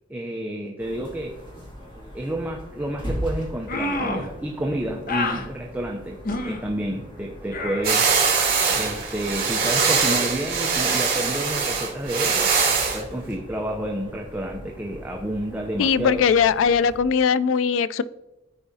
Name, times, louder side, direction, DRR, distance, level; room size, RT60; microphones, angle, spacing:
voice 1, 0.1-1.3 2.1-8.1 8.7-12.5 12.9-16.2, right 1 dB, 10° right, 0 dB, 0.6 m, -30 dB
sound 1, 0.8-17.0, equal, 25° left, 2.2 m, -40 dB
sound 2, 3.7-4.3 5.1-5.4 6.2-6.6 7.5-7.9, left 2 dB, 50° left, 0.8 m, -27 dB
sound 3, 7.8-13.0, right 5 dB, 55° right, 2.2 m, -22 dB
voice 2, 15.8-18.0, left 6 dB, 85° left, 18 dB, 0.3 m, -20 dB
13.0 x 4.8 x 2.7 m, 1.0 s
head